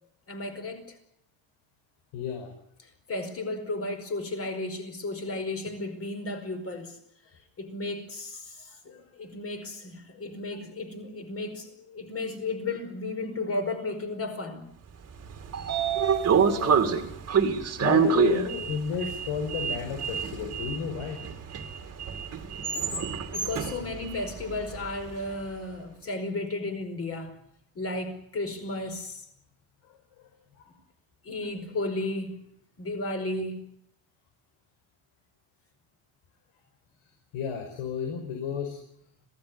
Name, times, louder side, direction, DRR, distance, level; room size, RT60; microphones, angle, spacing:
voice 1, 0.3-0.9 3.1-7.0 7.6-14.7 23.3-27.3 27.7-29.2 31.2-32.4 32.8-33.6, left 2 dB, 30° left, 7 dB, 5.0 m, -34 dB
voice 2, 2.1-2.5 16.3-16.9 17.8-21.2 37.3-38.8, left 7 dB, 80° left, 4 dB, 5.6 m, -32 dB
Sliding door, 15.1-25.3, right 6 dB, 30° right, 2.4 m, -27 dB
26.5 x 17.5 x 9.7 m, 0.72 s
cardioid pair, 175°, 49 cm